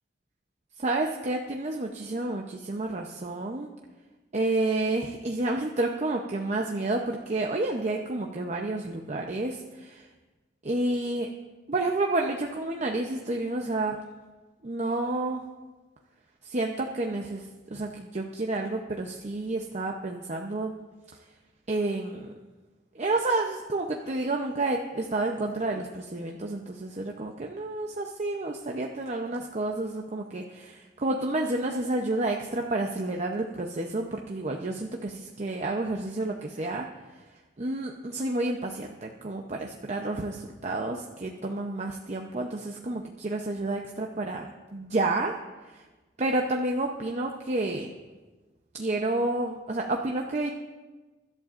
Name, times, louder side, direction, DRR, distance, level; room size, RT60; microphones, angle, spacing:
voice 1, 0.8-3.7 4.3-10.0 10.6-11.3 11.7-14.0 14.6-15.4 16.4-17.5 17.7-20.7 21.7-22.3 22.9-36.9 37.6-45.3 45.7-45.8 46.2-47.9 48.7-50.5, right 2 dB, 40° right, 1 dB, 0.7 m, -30 dB
23.0 x 11.5 x 2.5 m, 1.3 s
head